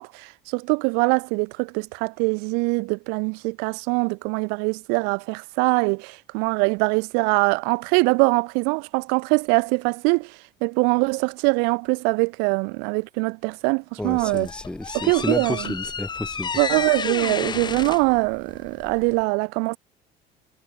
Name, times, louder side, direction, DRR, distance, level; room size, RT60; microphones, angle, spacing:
voice 1, 0.0-14.5 14.9-15.7 16.6-19.8, right 36 dB, 85° right, 0.5 m, -23 dB
sound 1, 14.0-19.2, left 6 dB, 25° left, 1.7 m, -32 dB
voice 2, 14.0-16.5, left 1 dB, 5° left, 2.3 m, -30 dB
cardioid pair, 120°, 17 cm